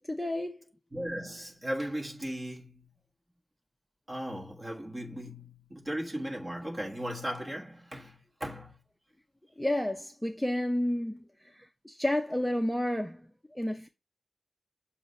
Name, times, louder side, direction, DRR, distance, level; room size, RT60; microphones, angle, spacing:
voice 1, 0.1-0.6 9.6-13.9, left 1 dB, 5° left, 0.5 m, -31 dB
voice 2, 0.9-2.9 4.1-8.8, equal, 25° right, 1.3 m, -37 dB
7.2 x 2.4 x 5.3 m
wide cardioid pair, 110°, 0 cm